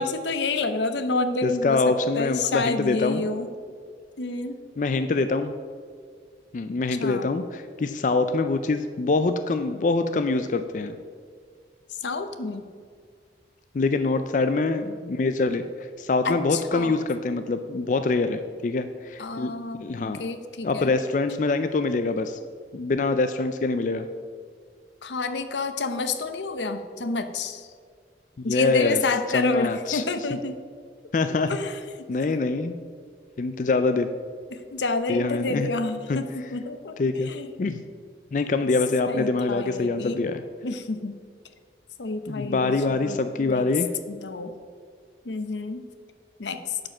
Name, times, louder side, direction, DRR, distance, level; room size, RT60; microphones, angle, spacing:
voice 1, 0.0-3.5 4.2-4.6 7.0-7.3 11.9-12.7 16.2-17.0 19.2-20.9 25.0-27.7 28.4-30.6 31.5-32.3 34.5-37.5 39.0-40.2 40.6-41.2 42.0-43.6 44.1-44.5 45.2-45.8 46.4-46.8, left 3 dB, 85° left, 9 dB, 0.8 m, -29 dB
voice 2, 1.4-3.2 4.8-5.5 6.5-11.0 13.7-15.6 16.0-19.5 19.8-20.2 20.6-22.4 22.7-24.1 28.4-29.0 29.3-30.0 31.1-31.5 32.1-32.8 33.4-34.1 35.1-35.7 36.1-36.2 37.0-37.3 37.6-37.8 38.3-40.4 42.3-43.9, left 3 dB, 45° left, 9 dB, 0.4 m, -24 dB
11.5 x 5.2 x 5.9 m, 2.1 s
head